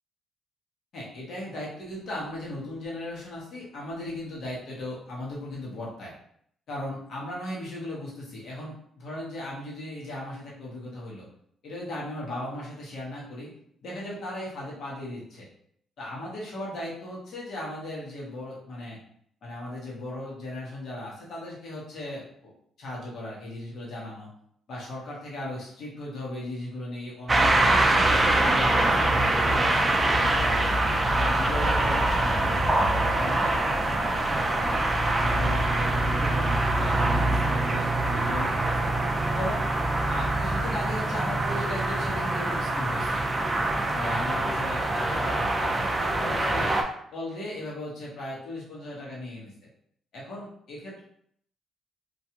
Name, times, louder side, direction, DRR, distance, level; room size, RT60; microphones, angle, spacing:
voice 1, 0.9-6.1 6.7-11.3 11.6-13.5 13.8-15.5 16.0-19.0 19.4-22.5 22.8-24.3 24.7-27.8 28.2-30.8 31.1-34.8 35.2-38.9 39.3-39.7 40.1-43.2 43.9-46.8 47.1-49.5 50.1-51.0, left 1 dB, 65° left, -5 dB, 1.1 m, -37 dB
sound 1, 27.3-46.8, right 2 dB, 20° right, 0.4 m, -24 dB
2.5 x 2.3 x 2.8 m, 0.67 s
cardioid pair, 90°, 0 cm